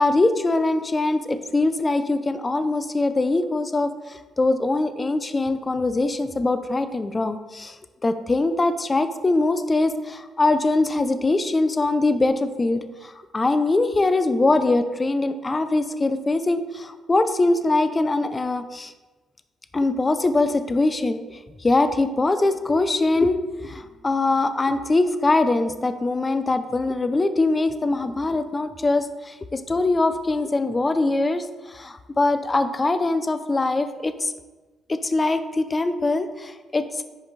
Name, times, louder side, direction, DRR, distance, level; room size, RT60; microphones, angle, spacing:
voice 1, 0.0-7.8 8.0-18.9 19.7-34.3 34.9-37.0, left 2 dB, 25° left, 10 dB, 0.6 m, -22 dB
9.9 x 5.1 x 4.1 m, 1.2 s
cardioid pair, 90°, 0 cm